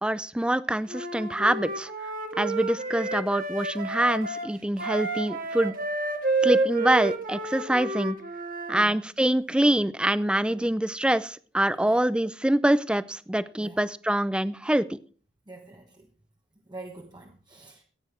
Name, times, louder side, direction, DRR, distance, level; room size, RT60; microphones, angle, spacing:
voice 1, 0.0-1.9 2.4-5.7 6.4-8.2 8.7-15.0, right 1 dB, 5° right, 16 dB, 0.5 m, -25 dB
Wind instrument woodwind instrument, 0.9-8.9, right 3 dB, 50° right, 1.7 m, -30 dB
voice 2, 15.5-16.1 16.6-17.8, right 2 dB, 25° right, 2 dB, 1.1 m, -45 dB
15.0 x 9.2 x 4.4 m, 0.43 s
head